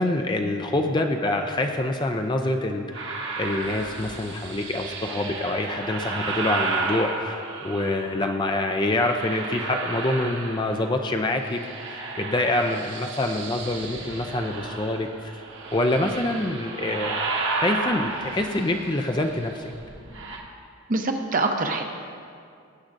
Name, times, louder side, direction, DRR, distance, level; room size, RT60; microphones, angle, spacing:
voice 1, 0.0-11.6 11.9-15.3 15.7-17.2 17.6-19.7, left 1 dB, 20° left, 4 dB, 0.4 m, -26 dB
sound 1, 2.9-8.3 8.8-11.0 11.3-20.4, right 3 dB, 55° right, 1.2 m, -33 dB
voice 2, 20.9-21.8, right 3 dB, 40° right, 4 dB, 0.8 m, -24 dB
17.5 x 8.5 x 2.6 m, 2.3 s
head